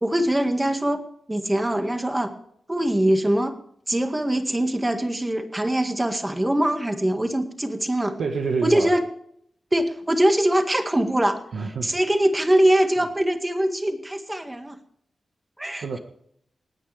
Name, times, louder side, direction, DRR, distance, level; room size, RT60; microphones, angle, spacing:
voice 1, 0.0-1.0 1.3-2.3 2.7-3.6 3.9-8.2 8.6-9.0 9.7-11.4 11.8-14.8 15.6-15.8, right 1 dB, 15° right, 5 dB, 1.9 m, -22 dB
voice 2, 8.2-8.9 11.5-12.0 15.8-16.0, right 4 dB, 90° right, 3 dB, 1.6 m, -27 dB
28.0 x 9.6 x 3.5 m, 0.68 s
wide cardioid pair, 100°, 0 cm